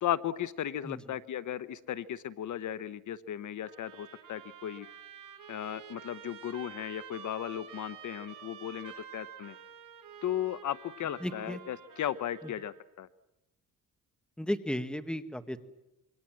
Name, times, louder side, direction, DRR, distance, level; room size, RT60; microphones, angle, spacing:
voice 1, 0.0-4.9 5.5-9.6 10.2-13.1, left 11 dB, 65° left, 15 dB, 0.9 m, -36 dB
Trumpet, 3.6-12.8, right 8 dB, 85° right, 5.6 m, -49 dB
voice 2, 11.2-11.6 14.4-15.6, equal, 5° left, 9 dB, 1.7 m, -34 dB
27.0 x 23.5 x 7.6 m, 0.99 s
cardioid pair, 115°, 32 cm